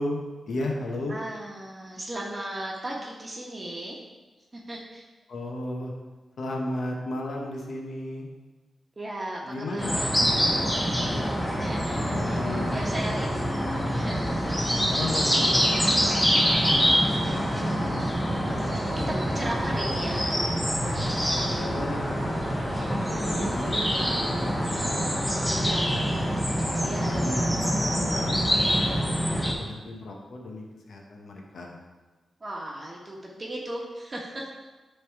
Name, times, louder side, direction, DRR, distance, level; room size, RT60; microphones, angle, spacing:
voice 1, 0.0-1.1 5.3-5.9 6.4-8.3 9.4-10.7 11.1-11.3 12.1-12.8 14.9-16.3 21.6-22.6 23.1-25.6 26.0-26.4 26.7-28.4 29.2-31.8, left 1 dB, 75° left, 0 dB, 0.9 m, -35 dB
voice 2, 1.1-4.0 4.5-5.0 9.0-11.0 11.6-15.9 17.7-20.3 20.9-21.2 25.3-26.3 26.8-27.3 32.4-34.5, right 1 dB, 35° right, -2 dB, 1.1 m, -37 dB
sound 1, 9.8-29.5, equal, 10° left, 1.3 m, -25 dB
9.0 x 3.4 x 4.6 m, 1.2 s
cardioid pair, 70°, 0 cm